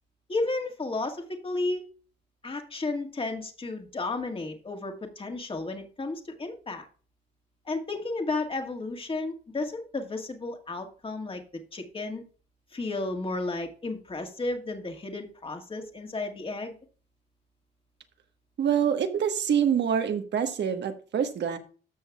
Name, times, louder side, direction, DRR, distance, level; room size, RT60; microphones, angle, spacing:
voice 1, 0.3-1.8 2.4-6.9 7.7-11.4 11.7-12.2 12.7-16.7, left 2 dB, 25° left, 5 dB, 2.0 m, -33 dB
voice 2, 18.6-21.6, right 8 dB, 60° right, 7 dB, 1.4 m, -26 dB
13.5 x 6.4 x 2.4 m, 0.38 s
cardioid pair, 90°, 20 cm